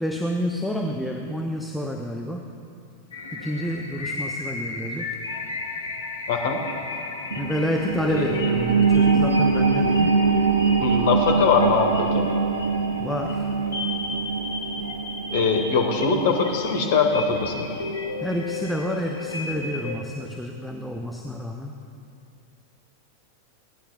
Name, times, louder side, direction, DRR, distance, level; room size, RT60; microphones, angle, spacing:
voice 1, 0.0-2.5 3.3-5.1 7.4-10.2 13.0-13.5 18.2-21.7, equal, ahead, 1 dB, 0.5 m, -29 dB
sound 1, 3.1-20.0, left 3 dB, 75° left, 0.9 m, -34 dB
voice 2, 6.3-6.6 8.1-8.3 10.8-12.3 15.3-17.7, left 5 dB, 55° left, 2 dB, 1.3 m, -22 dB
sound 2, 7.3-18.4 18.8-18.9, right 5 dB, 70° right, 0.3 m, -24 dB
17.0 x 9.8 x 2.4 m, 2.6 s
figure-of-eight pair, 90°, 0 cm